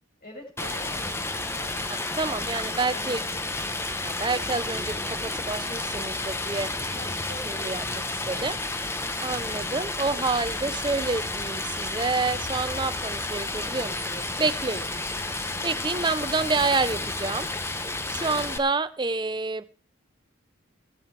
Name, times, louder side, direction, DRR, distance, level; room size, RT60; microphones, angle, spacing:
voice 1, 0.2-3.8 6.9-7.7, left 1 dB, 45° left, 6.0 m, -45 dB
Stream, 0.6-18.6, left 2 dB, 10° left, 0.8 m, -31 dB
voice 2, 1.9-3.2 4.0-6.7 7.5-7.8 8.3-8.6 8.8-8.9 9.2-14.9 15.3-15.4 15.6-17.5 18.1-19.6, right 3 dB, 20° right, 0.6 m, -28 dB
20.0 x 7.8 x 4.7 m
head